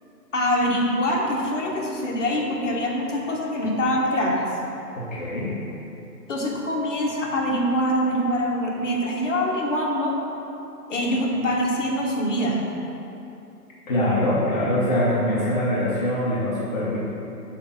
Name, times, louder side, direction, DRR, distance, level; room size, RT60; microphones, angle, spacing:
voice 1, 0.3-4.4 6.3-10.1 10.9-12.6, equal, 50° left, -2 dB, 1.3 m, -24 dB
voice 2, 5.0-5.6 13.9-17.0, left 1 dB, 25° left, -8 dB, 0.9 m, -23 dB
8.3 x 3.5 x 5.7 m, 2.8 s
hypercardioid pair, 155°, 49 cm